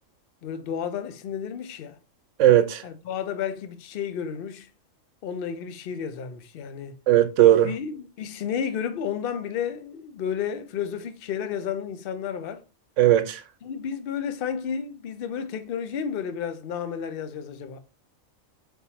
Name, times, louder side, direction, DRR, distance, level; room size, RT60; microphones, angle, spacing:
voice 1, 0.4-2.0 2.8-4.7 5.2-7.0 7.6-12.6 13.6-17.8, left 7 dB, 55° left, 0.7 m, -32 dB
voice 2, 2.4-2.8 7.1-7.7 13.0-13.4, right 12 dB, 70° right, 0.9 m, -17 dB
4.5 x 3.4 x 2.8 m
omnidirectional pair, 1.4 m